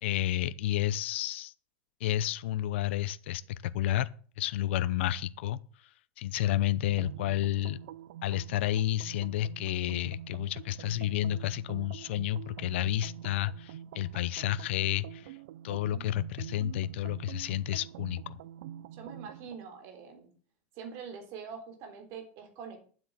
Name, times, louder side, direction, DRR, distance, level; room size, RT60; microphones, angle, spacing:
voice 1, 0.0-1.5 2.0-4.1 4.4-5.6 6.2-7.8 8.2-15.4 15.6-18.4, left 13 dB, 70° left, 0.7 m, -31 dB
sound 1, 6.9-19.6, right 11 dB, 75° right, 0.5 m, -46 dB
voice 2, 18.9-20.3 20.8-22.8, right 6 dB, 45° right, 3.9 m, -44 dB
9.8 x 7.8 x 7.8 m
supercardioid pair, 155°, 6 cm